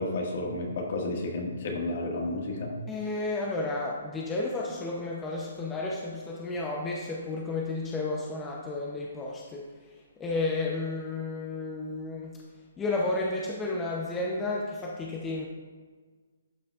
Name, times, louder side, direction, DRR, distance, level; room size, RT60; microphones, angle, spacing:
voice 1, 0.0-2.7, left 2 dB, 55° left, 0 dB, 1.7 m, -31 dB
voice 2, 2.9-12.4 12.8-15.5, left 2 dB, 10° left, -2 dB, 0.6 m, -32 dB
11.5 x 6.0 x 2.4 m, 1.4 s
hypercardioid pair, 155°, 0 cm